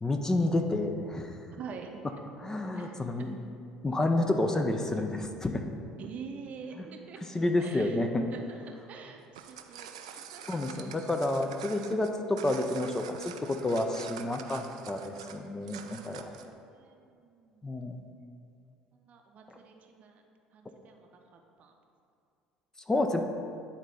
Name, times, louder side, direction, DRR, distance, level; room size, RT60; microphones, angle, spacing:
voice 1, 0.0-1.3 2.4-3.4 3.8-5.6 7.3-8.3 10.5-16.3 17.6-18.0 22.9-23.2, left 2 dB, 15° left, 5 dB, 0.5 m, -29 dB
voice 2, 1.5-2.2 2.7-3.0 6.0-8.0 8.3-10.6 16.1-17.7 18.9-20.2 20.5-21.7, right 5 dB, 45° right, 3 dB, 0.7 m, -46 dB
sound 1, 9.2-16.5, right 8 dB, 70° right, 0.4 m, -46 dB
9.2 x 4.0 x 3.4 m, 2.4 s
figure-of-eight pair, 60°, 3 cm